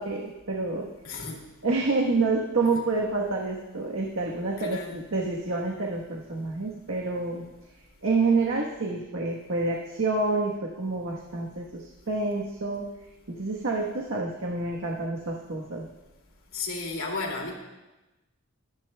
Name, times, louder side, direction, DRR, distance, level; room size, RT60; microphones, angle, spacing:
voice 1, 0.0-0.9 1.6-7.4 8.0-12.9 13.3-15.9, right 3 dB, 75° right, -1 dB, 1.2 m, -28 dB
voice 2, 1.0-1.4 2.6-2.8 4.6-5.0 16.5-17.5, left 3 dB, 80° left, 0 dB, 2.4 m, -34 dB
24.5 x 10.0 x 2.2 m, 1.1 s
head